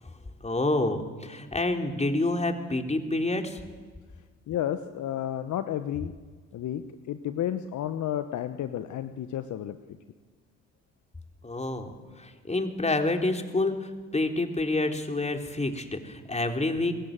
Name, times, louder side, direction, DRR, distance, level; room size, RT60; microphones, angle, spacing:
voice 1, 0.4-3.6 11.4-16.9, left 2 dB, 20° left, 4 dB, 3.7 m, -28 dB
voice 2, 4.5-6.1 6.5-9.8, left 11 dB, 55° left, 10 dB, 1.2 m, -31 dB
26.5 x 21.5 x 7.6 m, 1.5 s
figure-of-eight pair, 50°, 36 cm